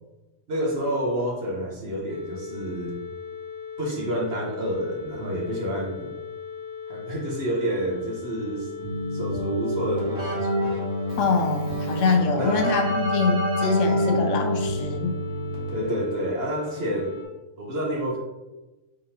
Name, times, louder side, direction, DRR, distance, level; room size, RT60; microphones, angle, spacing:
voice 1, 0.5-3.0 3.8-6.0 6.9-8.7 9.1-10.5 12.4-12.7 15.7-17.2 17.6-18.2, right 1 dB, 50° right, -1 dB, 1.1 m, -29 dB
sound 1, 2.1-17.2, left 7 dB, 5° right, 0.7 m, -38 dB
Keyboard (musical), 8.8-16.1, equal, 70° right, 1.6 m, -27 dB
voice 2, 11.2-15.2, left 4 dB, 70° left, 3 dB, 1.0 m, -24 dB
5.1 x 3.7 x 2.8 m, 1.0 s
omnidirectional pair, 1.4 m